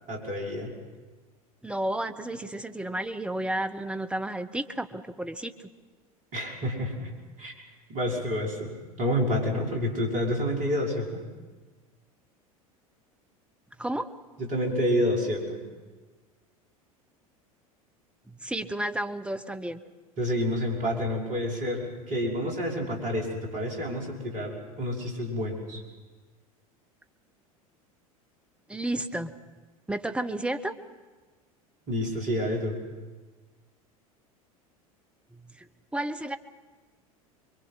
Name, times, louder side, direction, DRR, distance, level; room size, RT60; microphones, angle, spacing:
voice 1, 0.1-0.7 6.3-7.1 7.4-7.5 7.9-8.7 9.0-11.2 14.4-15.6 20.2-25.8 31.9-32.8, equal, 45° right, -1 dB, 5.6 m, -29 dB
voice 2, 1.6-5.7 13.8-14.1 18.4-19.8 28.7-29.3 29.9-30.7 35.6-35.7 35.9-36.4, right 1 dB, 5° right, 7 dB, 1.1 m, -32 dB
26.0 x 23.0 x 5.9 m, 1.3 s
figure-of-eight pair, 80°, 19 cm